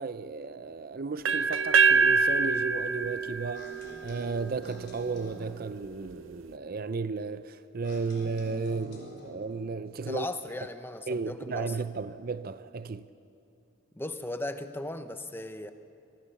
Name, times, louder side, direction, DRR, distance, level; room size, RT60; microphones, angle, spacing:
voice 1, 0.0-10.3 11.1-13.1, right 4 dB, 45° right, 0.5 m, -34 dB
sound 1, 1.2-5.1, right 5 dB, 75° right, 0.8 m, -25 dB
sound 2, 3.5-5.5 7.8-9.5, left 1 dB, 55° left, 4.4 m, -48 dB
voice 2, 10.0-11.8 13.9-15.7, left 1 dB, 10° left, 0.8 m, -37 dB
24.5 x 18.5 x 7.1 m
head